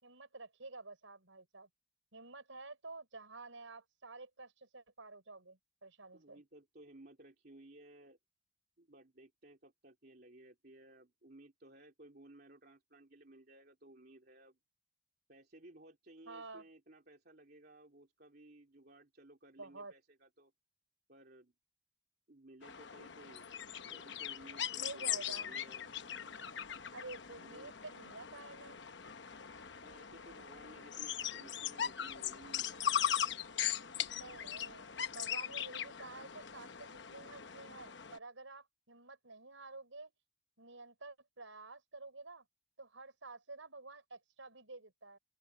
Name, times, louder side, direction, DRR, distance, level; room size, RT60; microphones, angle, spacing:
voice 1, 0.0-1.7 2.1-6.4 16.3-16.6 19.6-19.9 24.8-25.5 26.9-28.8 34.1-40.1 40.6-42.4 42.8-45.2, right 3 dB, 85° right, 5.5 m, -50 dB
voice 2, 6.1-8.2 8.8-14.6 15.3-20.5 21.1-21.5 22.3-23.5 23.9-25.8 27.4-27.7 29.8-32.7, right 1 dB, 50° right, 3.0 m, -58 dB
sound 1, 22.6-38.2, left 9 dB, 65° left, 1.0 m, -40 dB
open air
head